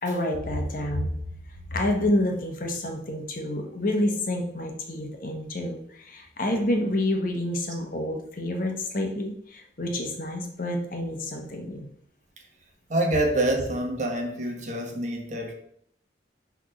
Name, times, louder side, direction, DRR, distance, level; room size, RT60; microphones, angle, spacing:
voice 1, 0.0-1.1 1.7-11.9, left 1 dB, 50° left, 2 dB, 1.2 m, -28 dB
voice 2, 12.9-15.5, right 1 dB, 45° right, 2 dB, 1.3 m, -26 dB
6.3 x 3.6 x 5.9 m, 0.68 s
head